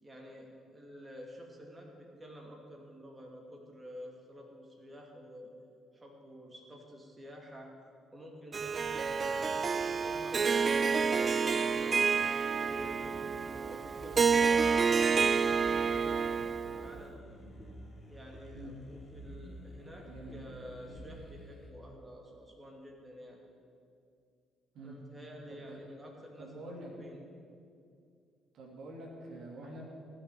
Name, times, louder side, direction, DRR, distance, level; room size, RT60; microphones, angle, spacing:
voice 1, 0.0-5.5 5.9-7.7 8.1-12.1 12.6-16.3 16.6-17.1 18.1-23.4 24.8-27.2, equal, 20° right, -1 dB, 2.6 m, -50 dB
Harp, 8.5-17.0, right 5 dB, 40° right, 0.3 m, -29 dB
sound 1, 12.7-21.7, equal, 35° left, 3.1 m, -49 dB
voice 2, 20.0-20.4 24.7-25.0 25.5-25.8 26.4-26.9 28.5-29.8, right 1 dB, 60° right, -2 dB, 2.8 m, -46 dB
15.5 x 6.4 x 9.2 m, 2.4 s
hypercardioid pair, 45°, 0 cm